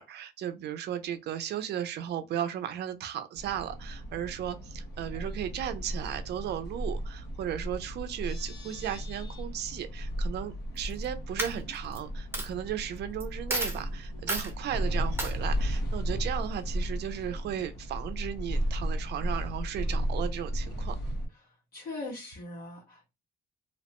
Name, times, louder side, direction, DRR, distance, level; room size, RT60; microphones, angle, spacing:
voice 1, 0.0-21.0, right 10 dB, 80° right, 0.5 m, -35 dB
sound 1, 3.4-21.3, equal, 90° left, 1.4 m, -34 dB
Coin (dropping), 10.8-11.0 11.4-12.0 12.3-12.5 13.2-13.3 13.5-13.8 14.3-14.5 15.2-15.3, right 1 dB, 15° right, 0.9 m, -31 dB
voice 2, 21.4-23.1, left 2 dB, 65° left, 1.4 m, -41 dB
2.8 x 2.0 x 2.9 m
cardioid pair, 125°, 17 cm